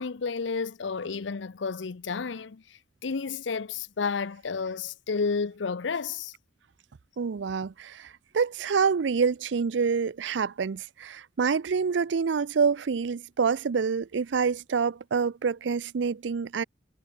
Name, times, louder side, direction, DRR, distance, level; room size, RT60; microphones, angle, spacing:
voice 1, 0.0-6.3, left 5 dB, 80° left, 0.6 m, -31 dB
voice 2, 7.2-16.6, right 5 dB, 75° right, 0.5 m, -27 dB
head